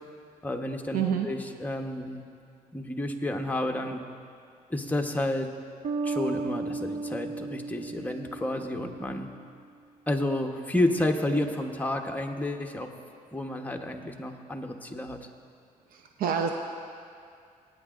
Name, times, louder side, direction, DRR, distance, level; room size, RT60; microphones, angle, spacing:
voice 1, 0.4-2.3 2.7-4.0 4.7-5.5 6.0-9.3 10.1-12.9 13.3-15.2, left 1 dB, 10° left, 3 dB, 1.0 m, -30 dB
voice 2, 0.9-1.3 15.9-16.5, right 8 dB, 80° right, 3 dB, 0.7 m, -27 dB
Bass guitar, 5.8-9.4, right 3 dB, 50° right, 0.4 m, -35 dB
21.5 x 9.1 x 2.5 m, 2.3 s
cardioid pair, 85°, 15 cm